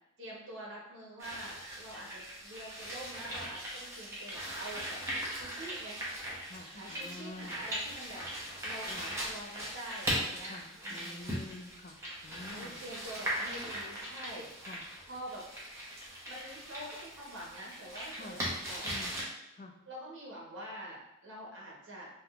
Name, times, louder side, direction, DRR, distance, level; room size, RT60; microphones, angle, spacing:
voice 1, 0.2-5.0 5.3-6.0 6.7-8.3 8.6-11.3 12.5-14.7 15.1-15.4 16.3-18.9 19.9-22.2, right 1 dB, 70° right, -3 dB, 0.9 m, -46 dB
sound 1, 1.2-19.2, equal, 15° right, 0.7 m, -39 dB
voice 2, 6.5-7.6 8.9-9.1 10.5-12.8 14.7-14.9 18.1-18.4 18.8-19.2 19.5-19.7, left 2 dB, 35° left, 4 dB, 0.3 m, -48 dB
3.5 x 2.7 x 2.3 m, 0.84 s
head